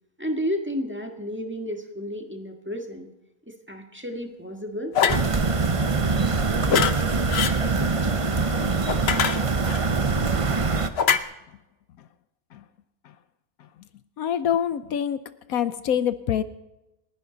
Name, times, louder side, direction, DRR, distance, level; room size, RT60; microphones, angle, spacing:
voice 1, 0.2-3.1 3.5-4.9, equal, 10° right, 3 dB, 1.6 m, -32 dB
sound 1, 4.9-5.3 6.7-6.9 7.3-7.6 8.9-9.8 11.0-11.2, left 7 dB, 50° left, 0.9 m, -22 dB
sound 2, 5.1-10.9, right 4 dB, 30° right, 0.6 m, -23 dB
voice 2, 14.2-15.2 15.5-16.4, left 9 dB, 75° left, 13 dB, 1.1 m, -25 dB
29.0 x 11.0 x 4.0 m, 0.97 s
omnidirectional pair, 1.6 m